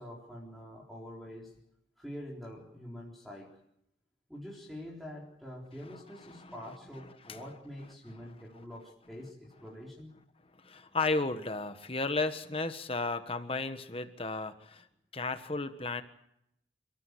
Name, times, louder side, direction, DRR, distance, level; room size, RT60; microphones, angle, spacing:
voice 1, 0.0-1.5 2.0-3.5 4.3-10.1, equal, ahead, -5 dB, 4.0 m, -45 dB
voice 2, 10.6-14.8 15.1-16.0, left 3 dB, 30° left, 10 dB, 1.4 m, -34 dB
29.0 x 14.5 x 8.4 m, 0.78 s
head